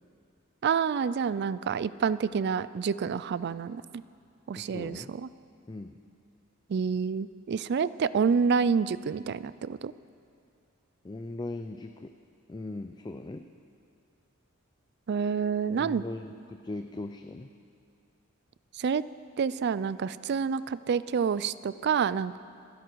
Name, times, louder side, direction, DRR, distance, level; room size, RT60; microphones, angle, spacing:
voice 1, 0.6-3.8 4.5-5.3 6.7-9.9 15.1-16.1 18.8-19.0 19.4-22.4, right 6 dB, 50° right, 17 dB, 0.4 m, -28 dB
voice 2, 4.5-5.1 5.7-6.0 11.0-12.1 12.5-13.5 15.8-17.5, left 2 dB, 20° left, 7 dB, 0.4 m, -39 dB
26.5 x 11.0 x 4.6 m, 2.4 s
head